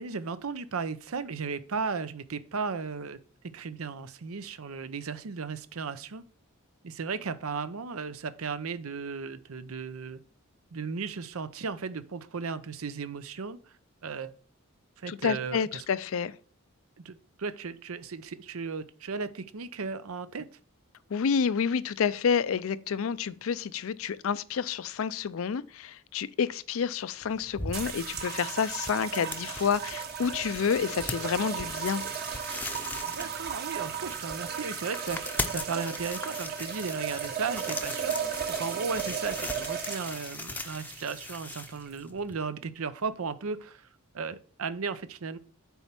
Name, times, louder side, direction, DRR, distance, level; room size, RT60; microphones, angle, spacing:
voice 1, 0.0-3.2 3.5-6.2 6.8-10.2 10.7-13.6 14.0-14.3 15.0-15.8 17.0-20.5 33.0-38.2 38.6-43.9 44.1-45.4, right 5 dB, 85° right, 0.7 m, -35 dB
voice 2, 15.1-16.3 21.1-32.0, left 6 dB, 70° left, 0.4 m, -29 dB
sound 1, 27.2-42.4, left 2 dB, 10° left, 0.6 m, -40 dB
sound 2, 27.7-42.0, right 8 dB, 50° right, 1.2 m, -36 dB
7.0 x 4.4 x 5.8 m
head